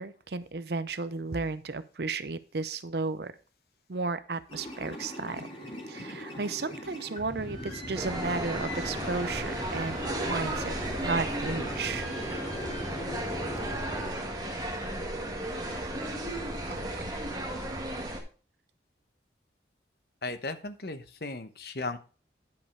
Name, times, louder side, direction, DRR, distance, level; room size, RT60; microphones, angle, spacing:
voice 1, 0.0-3.3 3.9-5.4 5.9-10.0 10.3-10.7 11.0-12.1 16.7-17.1, right 3 dB, 65° right, 13 dB, 0.7 m, -34 dB
sound 1, 4.5-14.1, left 1 dB, 35° left, 3.0 m, -39 dB
sound 2, 7.9-18.2, right 1 dB, 20° right, 1.9 m, -34 dB
voice 2, 20.2-22.0, left 3 dB, 60° left, 10 dB, 1.0 m, -36 dB
10.5 x 5.4 x 4.7 m, 0.35 s
head